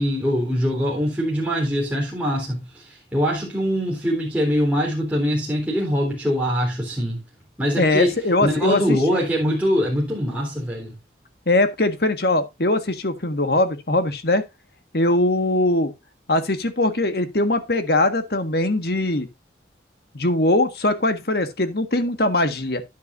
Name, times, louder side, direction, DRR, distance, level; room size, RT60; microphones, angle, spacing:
voice 1, 0.0-7.2 7.6-8.1 8.4-11.0, equal, 10° right, 3.6 m, -23 dB
voice 2, 7.8-9.0 11.5-14.4 14.9-15.9 16.3-19.3 20.1-22.8, left 2 dB, 55° left, 1.6 m, -21 dB
10.5 x 9.9 x 2.6 m
head